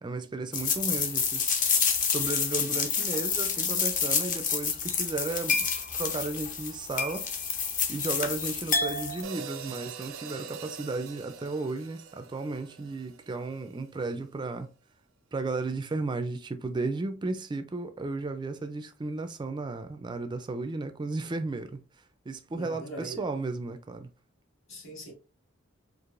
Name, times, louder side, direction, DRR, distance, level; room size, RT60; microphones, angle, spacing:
voice 1, 0.0-1.7 2.1-5.7 5.9-7.3 7.9-14.7 15.3-21.8 22.3-24.1, right 3 dB, 20° right, 0.3 m, -34 dB
sound 1, 0.5-9.2, left 6 dB, 40° left, 0.6 m, -28 dB
sound 2, 9.2-13.6, right 6 dB, 80° right, 0.5 m, -43 dB
voice 2, 22.5-23.2 24.7-25.1, right 1 dB, 75° left, 1.8 m, -41 dB
4.6 x 2.5 x 2.4 m
head